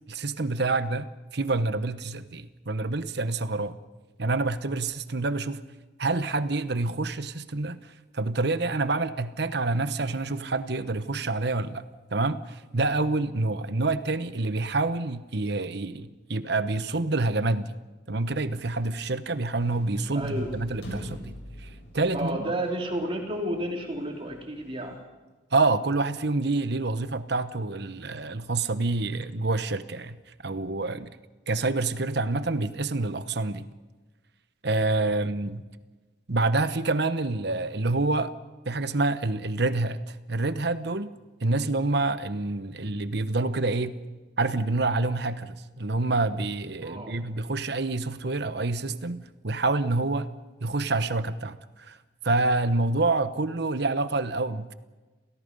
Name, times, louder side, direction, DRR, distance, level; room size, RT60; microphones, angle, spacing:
voice 1, 0.1-3.8 4.2-5.6 6.0-11.8 12.1-17.8 18.1-21.3 21.6-21.7 21.9-22.4 25.5-30.2 30.4-31.1 31.5-33.7 34.6-35.6 36.3-38.3 38.7-41.1 41.4-44.0 44.4-50.3 50.6-52.0 52.2-54.7, right 3 dB, 60° right, 12 dB, 1.1 m, -27 dB
sound 1, 19.5-25.0, equal, 60° left, 7.2 m, -44 dB
voice 2, 20.1-20.5 22.1-25.0 46.8-47.2, right 1 dB, 30° right, 1 dB, 3.4 m, -31 dB
28.0 x 17.5 x 5.4 m, 1.2 s
head